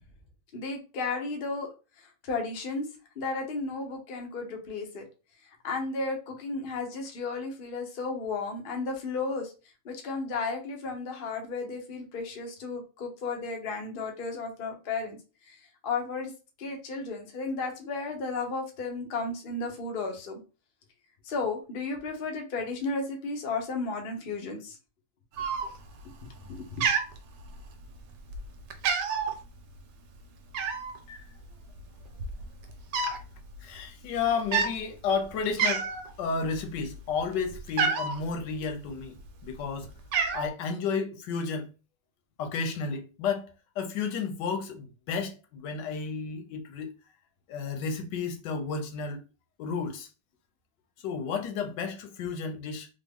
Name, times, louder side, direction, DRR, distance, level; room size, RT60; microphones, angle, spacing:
voice 1, 0.5-1.7 2.2-2.8 3.2-5.1 5.6-9.5 9.8-15.2 15.5-15.6 15.8-16.3 16.6-20.4 21.3-24.8 26.5-26.8, left 3 dB, 50° left, 0.7 m, -33 dB
Cat, 25.4-26.0 26.3-26.6 26.8-27.8 28.3-28.5 28.7-29.3 30.5-31.0 31.8-31.9 32.1-33.2 33.5-33.8 34.4-34.7 35.2-35.3 35.6-36.1 36.5-38.2 39.0-39.6 39.8-40.5, right 5 dB, 80° right, 1.3 m, -28 dB
voice 2, 33.6-35.9 36.2-39.2 39.4-39.9 40.3-41.7 42.4-46.9 47.5-49.2 49.6-50.1 51.0-52.9, left 5 dB, 85° left, 1.3 m, -32 dB
3.5 x 2.0 x 3.5 m
omnidirectional pair, 1.8 m